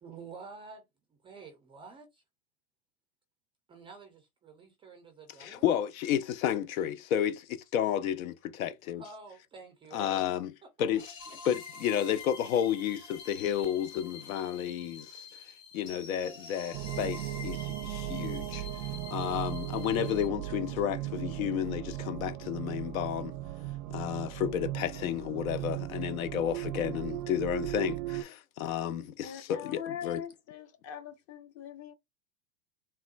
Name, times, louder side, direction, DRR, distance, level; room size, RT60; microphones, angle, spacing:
voice 1, 0.0-2.2 3.7-5.8 9.0-10.1 10.6-10.7 11.0-11.1, right 4 dB, 15° right, 0.3 m, -49 dB
voice 2, 5.4-9.0 9.9-10.5 10.8-11.1 11.5-18.7 19.1-23.3 23.9-30.2, left 10 dB, 75° left, 0.5 m, -32 dB
sound 1, 11.0-20.3, left 5 dB, 50° left, 1.9 m, -47 dB
sound 2, 16.7-28.2, right 15 dB, 90° right, 0.5 m, -37 dB
voice 3, 29.2-31.9, left 9 dB, 35° left, 0.8 m, -42 dB
3.5 x 2.2 x 2.4 m
hypercardioid pair, 115°, 42 cm